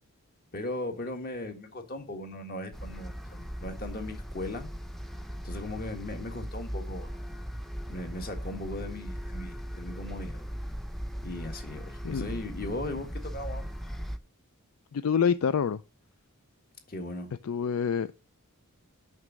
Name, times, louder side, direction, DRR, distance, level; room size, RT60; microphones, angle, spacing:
voice 1, 0.5-4.7 5.4-7.2 7.9-10.4 11.2-13.7 16.9-17.3, left 2 dB, 40° left, 1.7 m, -38 dB
sound 1, 2.7-14.2, equal, ahead, 0.6 m, -38 dB
voice 2, 14.9-15.8 17.4-18.1, left 7 dB, 65° left, 0.4 m, -26 dB
6.5 x 6.2 x 7.4 m
head